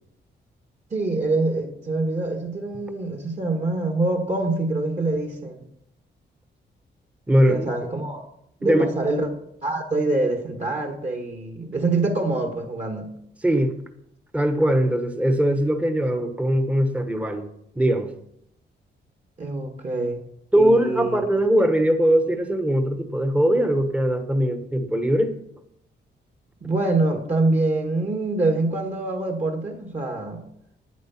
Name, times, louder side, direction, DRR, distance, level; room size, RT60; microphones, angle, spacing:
voice 1, 0.9-5.6 7.5-8.2 8.6-9.3 9.6-13.1 19.4-20.2 20.5-21.2 26.6-30.4, right 2 dB, 35° right, 4 dB, 1.6 m, -25 dB
voice 2, 7.3-7.7 8.6-8.9 13.4-13.7 14.3-17.5 17.8-18.1 20.5-25.3, right 1 dB, 5° right, 7 dB, 1.0 m, -20 dB
11.0 x 9.1 x 5.8 m, 0.75 s
wide cardioid pair, 140°, 19 cm